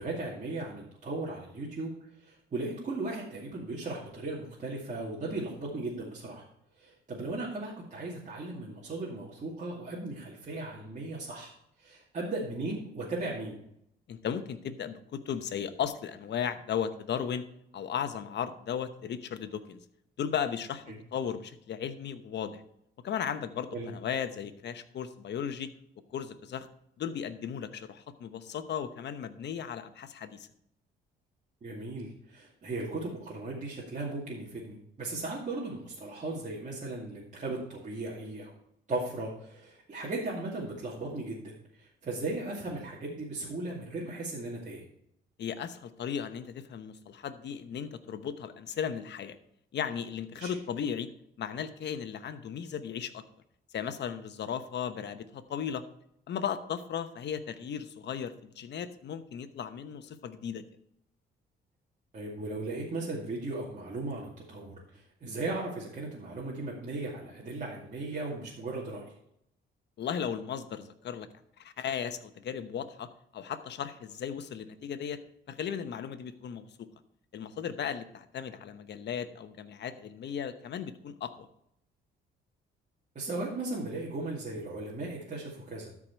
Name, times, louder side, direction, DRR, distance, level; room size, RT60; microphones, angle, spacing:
voice 1, 0.0-1.9 2.2-6.4 6.8-11.5 11.8-13.6 20.9-21.0 23.7-23.9 31.6-38.6 38.9-44.8 50.4-50.5 62.1-69.1 83.1-86.0, right 2 dB, 40° right, -5 dB, 2.4 m, -37 dB
voice 2, 14.1-17.4 17.7-19.8 20.2-20.8 21.1-22.6 23.0-25.7 26.1-26.7 27.0-30.5 45.4-49.4 49.7-51.1 51.4-53.2 53.7-55.8 56.3-60.6 70.0-71.3 71.6-75.2 75.5-76.9 77.3-81.5, left 8 dB, 60° left, 10 dB, 1.0 m, -36 dB
13.0 x 4.9 x 4.5 m, 0.74 s
cardioid pair, 90°, 20 cm